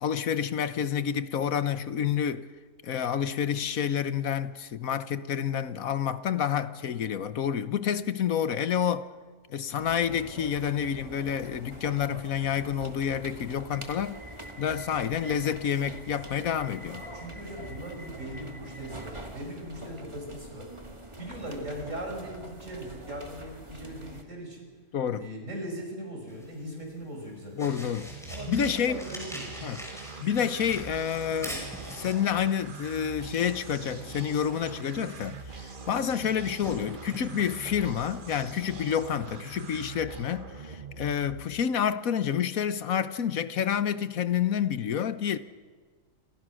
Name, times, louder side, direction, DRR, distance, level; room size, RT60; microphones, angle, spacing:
voice 1, 0.0-2.5 2.8-9.1 9.5-14.2 14.6-17.0 24.9-25.3 27.5-28.1 28.5-29.1 29.6-29.8 30.2-31.6 31.9-45.4, left 8 dB, 90° left, 1.5 m, -29 dB
sound 1, 9.8-24.2, right 1 dB, 20° right, 2.3 m, -44 dB
voice 2, 17.0-20.7 21.2-24.7 25.2-27.9 28.3-29.8, right 1 dB, 65° right, 7.4 m, -39 dB
sound 2, 26.3-39.9, equal, ahead, 6.4 m, -46 dB
sound 3, 27.9-41.7, right 5 dB, 40° right, 1.3 m, -43 dB
29.0 x 27.5 x 6.4 m
omnidirectional pair, 1.4 m